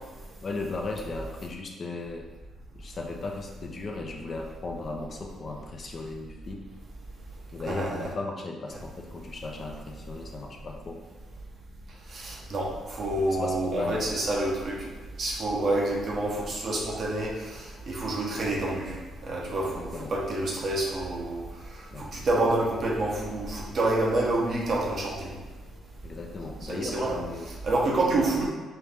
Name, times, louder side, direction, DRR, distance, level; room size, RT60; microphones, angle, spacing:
voice 1, 0.4-2.3 2.7-6.6 7.5-11.0 13.3-14.0 19.7-20.1 21.9-22.1 26.0-27.5, left 3 dB, 45° left, 1 dB, 0.6 m, -36 dB
voice 2, 7.7-8.1 12.1-14.8 15.2-19.0 19.2-21.5 22.0-25.3 26.7-27.2 27.5-28.5, right 2 dB, 50° right, -2 dB, 1.0 m, -28 dB
4.5 x 2.6 x 3.5 m, 1.3 s
cardioid pair, 90°, 0 cm